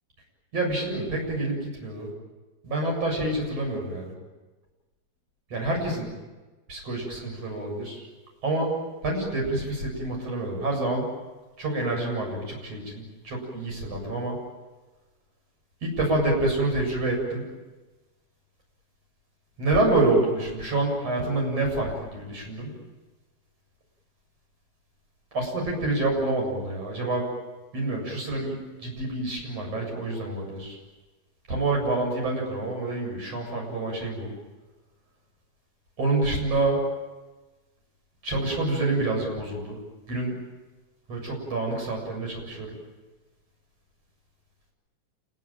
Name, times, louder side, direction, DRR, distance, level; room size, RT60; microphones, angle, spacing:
voice 1, 0.5-2.1 2.6-4.1 5.5-6.1 6.7-8.1 8.4-8.8 9.0-11.1 11.6-14.4 15.8-17.5 19.6-22.7 25.3-27.3 27.7-30.8 31.5-34.3 36.0-36.8 38.2-39.8 40.1-40.4 41.1-42.8, right 2 dB, 40° right, 0 dB, 8.8 m, -27 dB
28.0 x 21.5 x 9.2 m, 1.2 s
omnidirectional pair, 4.3 m